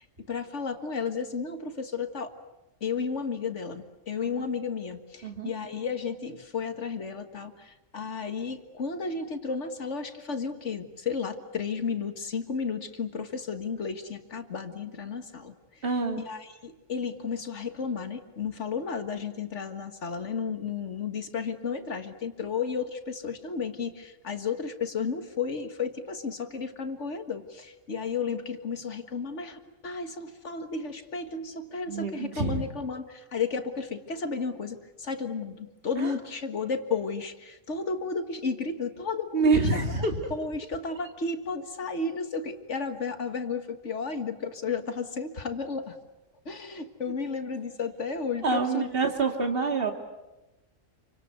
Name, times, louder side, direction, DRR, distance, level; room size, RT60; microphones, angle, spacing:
voice 1, 0.0-2.3 2.8-15.8 16.2-46.0 46.5-48.9, left 5 dB, 65° left, 8 dB, 2.0 m, -33 dB
voice 2, 15.8-16.2 31.9-32.6 36.0-36.1 39.3-40.3 48.4-49.9, right 4 dB, 45° right, 4 dB, 2.4 m, -26 dB
28.0 x 25.0 x 8.1 m, 1.0 s
omnidirectional pair, 1.3 m